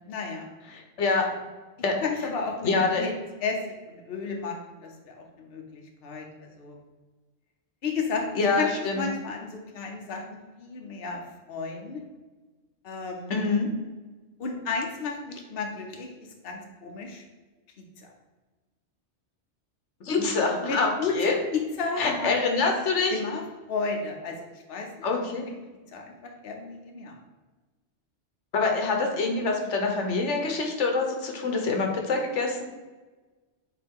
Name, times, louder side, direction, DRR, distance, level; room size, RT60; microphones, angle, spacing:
voice 1, 0.1-0.5 2.0-3.1 3.4-3.6 3.9-6.8 7.8-8.3 8.6-11.2 11.5-12.0 12.8-13.5 14.4-16.1 16.4-17.2 18.0-18.1 20.6-22.3 22.6-22.7 23.1-24.4 24.7-25.1 25.5-25.6 25.9-27.2, left 4 dB, 60° left, 1 dB, 1.0 m, -33 dB
voice 2, 0.7-1.3 1.8-2.0 2.6-3.0 8.3-9.0 13.3-13.7 20.0-21.3 22.0-23.1 25.0-25.5 28.5-32.6, left 3 dB, 90° left, 2 dB, 1.3 m, -25 dB
7.7 x 3.4 x 3.6 m, 1.3 s
omnidirectional pair, 1.2 m